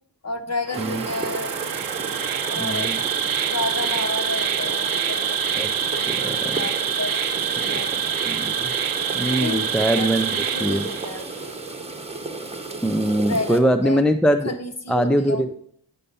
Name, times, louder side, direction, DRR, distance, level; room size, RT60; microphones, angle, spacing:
voice 1, 0.2-1.5 2.5-2.9 3.5-6.1 6.4-7.2 7.7-7.9 9.3-9.7 10.0-11.5 13.3-14.0 14.4-15.5, left 3 dB, 35° left, 6 dB, 1.2 m, -31 dB
sound 1, 0.7-13.6, right 3 dB, 15° right, 1.2 m, -34 dB
Insect, 0.7-11.4, right 8 dB, 50° right, 0.7 m, -26 dB
voice 2, 2.6-3.0 5.6-5.7 6.1-6.6 7.6-7.7 8.3-8.7 9.1-10.3 10.6-10.9 12.8-14.5 14.9-15.5, right 1 dB, ahead, 9 dB, 0.5 m, -22 dB
9.7 x 5.6 x 5.4 m, 0.64 s
cardioid pair, 65°, 45 cm